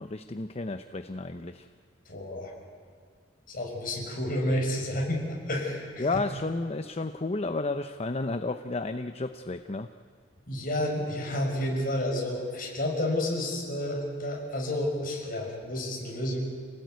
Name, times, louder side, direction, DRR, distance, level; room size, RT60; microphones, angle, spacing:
voice 1, 0.0-1.7 6.0-9.9, left 3 dB, 30° left, 9 dB, 0.7 m, -32 dB
voice 2, 2.1-2.5 3.5-6.1 10.5-16.4, left 1 dB, 45° left, 0 dB, 6.3 m, -30 dB
28.0 x 18.0 x 9.5 m, 2.2 s
head